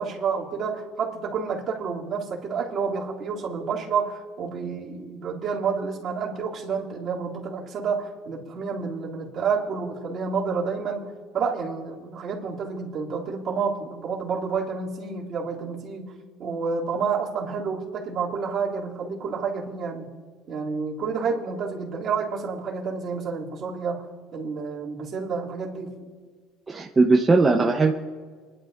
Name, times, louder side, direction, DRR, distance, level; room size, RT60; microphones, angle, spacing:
voice 1, 0.0-16.1 16.4-20.1 20.5-24.1 24.3-26.0, right 5 dB, 50° right, -4 dB, 2.9 m, -29 dB
voice 2, 26.7-27.9, right 3 dB, 20° right, 1 dB, 0.9 m, -19 dB
29.0 x 11.0 x 2.6 m, 1.5 s
supercardioid pair, 95°, 0 cm